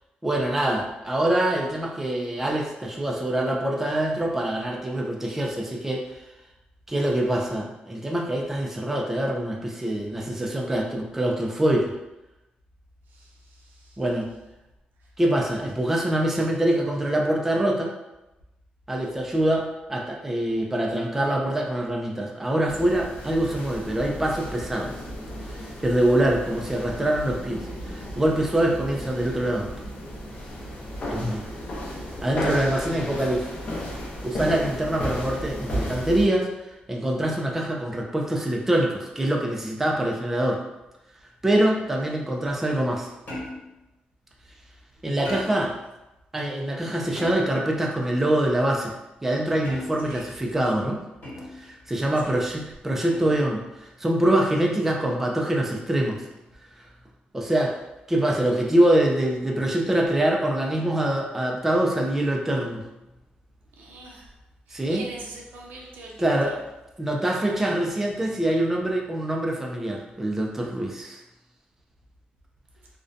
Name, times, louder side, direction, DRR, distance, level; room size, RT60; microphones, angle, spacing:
voice 1, 0.2-6.0 6.9-11.9 14.0-14.3 15.2-17.9 18.9-24.9 25.8-29.7 31.1-31.4 32.2-33.5 34.2-36.5 36.9-40.6 41.4-43.1 45.0-45.7 46.3-48.9 49.2-51.0 51.6-53.6 54.0-56.2 57.3-57.8 58.1-62.8 64.7-65.1 66.2-66.6 67.0-71.2, right 1 dB, 10° right, -1 dB, 0.3 m, -24 dB
voice 2, 13.1-14.0 28.6-28.7 50.0-50.4 52.2-52.5 63.8-64.3 64.7-66.6, right 2 dB, 80° right, -2 dB, 0.5 m, -43 dB
sound 1, 22.7-36.3, equal, 50° left, 0.6 m, -34 dB
sound 2, 43.3-43.8 45.2-45.8 47.1-47.7 49.6-50.2 51.2-51.7 53.1-53.5, left 1 dB, 70° left, 1.2 m, -37 dB
2.5 x 2.1 x 2.5 m, 0.96 s
cardioid pair, 125°, 3 cm